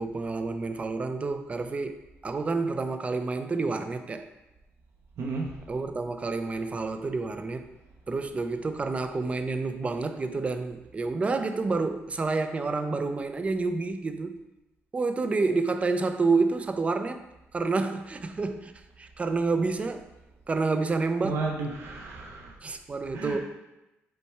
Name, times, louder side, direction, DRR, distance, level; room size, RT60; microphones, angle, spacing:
voice 1, 0.0-2.0 2.2-4.3 5.7-7.7 8.1-14.4 14.9-17.3 17.5-18.7 19.0-20.1 20.5-21.5 22.6-23.4, right 3 dB, 25° right, 8 dB, 0.4 m, -29 dB
voice 2, 5.2-5.5 21.2-22.5 23.1-23.4, right 3 dB, 70° right, -2 dB, 0.6 m, -33 dB
5.3 x 2.2 x 4.5 m, 0.97 s
cardioid pair, 105°, 5 cm